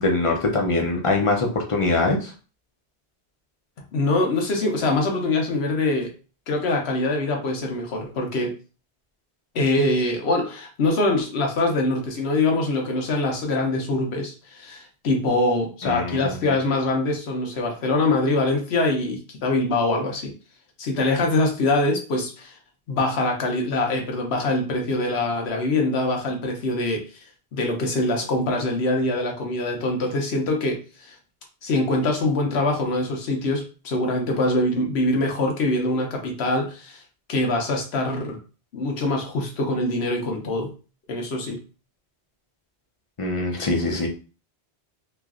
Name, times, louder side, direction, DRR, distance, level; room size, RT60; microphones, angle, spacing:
voice 1, 0.0-2.3 15.8-16.3 43.2-44.1, left 2 dB, 35° left, 1 dB, 0.6 m, -23 dB
voice 2, 3.9-6.1 6.5-8.5 9.5-20.3 20.8-22.6 22.9-27.0 27.5-31.1 31.6-37.0 37.3-38.4 38.7-40.7 41.1-41.6, left 2 dB, 70° left, 2 dB, 1.0 m, -24 dB
3.0 x 2.5 x 2.4 m, 0.35 s
omnidirectional pair, 1.1 m